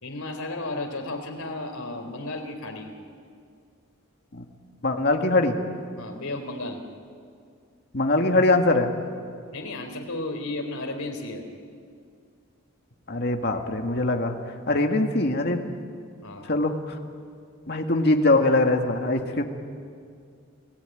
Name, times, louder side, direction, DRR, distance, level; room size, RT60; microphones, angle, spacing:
voice 1, 0.0-2.9 6.0-6.8 9.5-11.4 16.2-16.5, left 2 dB, 85° left, 4 dB, 3.7 m, -33 dB
voice 2, 4.8-5.6 7.9-8.9 13.1-14.3 14.7-15.6 16.5-16.7 17.7-19.4, left 2 dB, 50° left, 4 dB, 1.9 m, -22 dB
29.5 x 18.0 x 9.2 m, 2.2 s
head